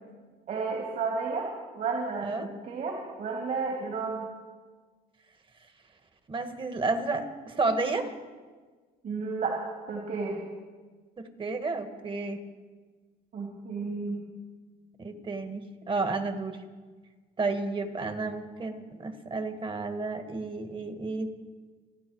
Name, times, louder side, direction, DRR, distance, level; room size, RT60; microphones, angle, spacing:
voice 1, 0.5-1.5 1.7-4.3 9.0-9.6 9.9-10.4 13.3-14.2, right 4 dB, 55° right, -1 dB, 3.0 m, -32 dB
voice 2, 6.3-8.1 11.2-12.4 15.0-16.6 17.4-21.3, right 3 dB, 30° right, 8 dB, 1.6 m, -31 dB
29.0 x 9.6 x 4.7 m, 1.4 s
cardioid pair, 110°, 17 cm